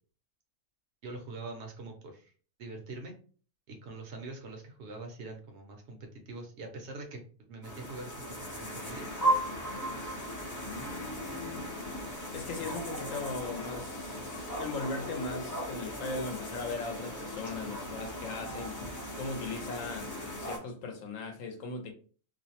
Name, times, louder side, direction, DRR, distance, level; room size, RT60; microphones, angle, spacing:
voice 1, 1.0-2.3 2.6-3.1 3.7-7.2 7.5-8.3 8.5-9.2 11.2-11.3 12.6-12.7, right 3 dB, 65° right, 0.8 m, -44 dB
sound 1, 7.6-20.6, right 1 dB, 25° left, 0.4 m, -36 dB
voice 2, 12.3-21.9, left 3 dB, 75° left, 0.9 m, -38 dB
2.5 x 2.0 x 2.7 m
omnidirectional pair, 1.4 m